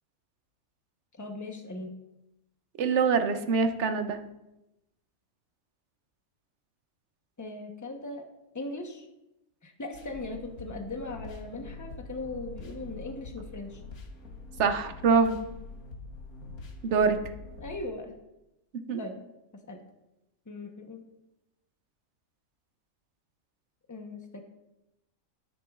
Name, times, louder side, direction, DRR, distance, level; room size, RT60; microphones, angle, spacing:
voice 1, 1.1-1.9 7.4-8.3 8.5-9.1 9.6-13.8 17.6-18.1 19.0-19.2 19.7-19.8 20.5-21.1 23.9-24.4, left 2 dB, 15° left, 3 dB, 0.8 m, -39 dB
voice 2, 2.8-4.2 14.6-15.4 16.8-17.2 18.9-19.0, right 5 dB, 60° right, 8 dB, 1.0 m, -24 dB
sound 1, 9.9-17.8, left 3 dB, 85° left, 1.6 m, -44 dB
10.5 x 10.0 x 2.4 m, 0.92 s
omnidirectional pair, 1.5 m